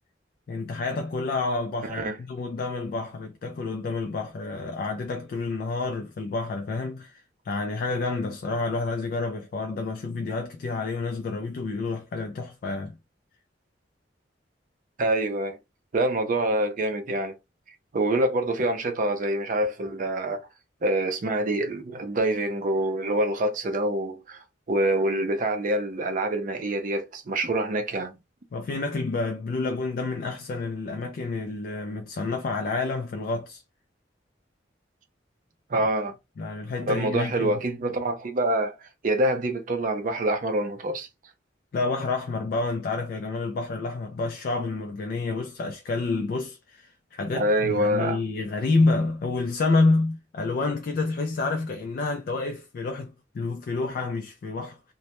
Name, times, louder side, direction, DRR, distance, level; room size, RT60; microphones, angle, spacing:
voice 1, 0.5-13.0 28.5-33.6 35.7-35.9 36.4-37.6 41.7-54.9, left 3 dB, 50° left, 0.3 m, -29 dB
voice 2, 15.0-15.6 15.9-17.3 17.9-20.4 20.8-28.2 35.7-36.1 36.9-41.1 47.3-48.2, right 1 dB, 45° right, 0.5 m, -26 dB
2.1 x 2.0 x 2.8 m
head